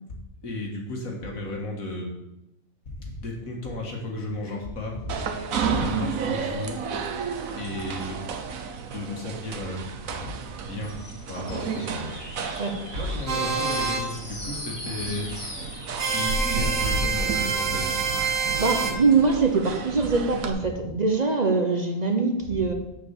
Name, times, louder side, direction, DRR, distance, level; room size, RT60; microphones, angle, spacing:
voice 1, 0.4-2.1 2.9-5.3 5.8-6.7 7.6-8.2 8.9-11.0 11.3-12.2 12.9-15.3 16.1-18.0 20.7-20.8 22.5-22.6, left 2 dB, 85° left, 0 dB, 2.3 m, -34 dB
sound 1, 5.1-20.5, right 4 dB, 85° right, 1.3 m, -32 dB
sound 2, 10.8-18.8, left 1 dB, 20° left, 1.5 m, -40 dB
sound 3, 13.3-14.1 16.0-18.9, right 5 dB, 65° right, 1.8 m, -26 dB
voice 2, 18.6-22.7, right 4 dB, 35° right, 3 dB, 0.9 m, -23 dB
7.0 x 5.4 x 7.3 m, 0.88 s
omnidirectional pair, 1.4 m